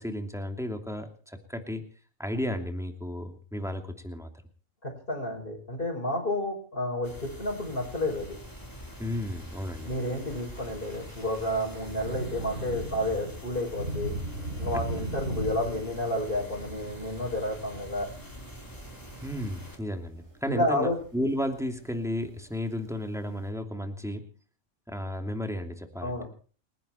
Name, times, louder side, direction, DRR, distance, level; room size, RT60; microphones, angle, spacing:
voice 1, 0.0-1.9 2.2-4.3 9.0-9.9 19.2-24.3 24.9-26.2, left 1 dB, ahead, 5 dB, 2.7 m, -33 dB
voice 2, 4.8-8.4 9.9-14.1 14.6-18.1 20.5-21.0 26.0-26.3, left 1 dB, 40° left, -4 dB, 5.6 m, -30 dB
sound 1, 7.0-19.8, equal, 15° left, 4.1 m, -45 dB
Thunder / Rain, 11.2-23.5, right 1 dB, 55° right, 6.3 m, -39 dB
29.5 x 11.0 x 4.4 m, 0.42 s
omnidirectional pair, 1.4 m